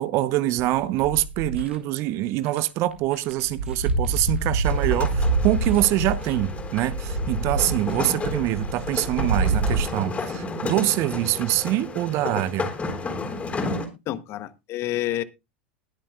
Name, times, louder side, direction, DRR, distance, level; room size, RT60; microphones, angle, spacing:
voice 1, 0.0-12.7, right 15 dB, 50° right, 0.8 m, -25 dB
sound 1, 0.6-1.8 2.5-2.6 2.9-9.8, right 3 dB, 90° right, 2.2 m, -26 dB
sound 2, 4.6-13.9, left 3 dB, 20° left, 3.6 m, -32 dB
voice 2, 14.1-15.2, left 14 dB, 45° left, 0.9 m, -29 dB
21.0 x 7.2 x 2.4 m
figure-of-eight pair, 85°, 6 cm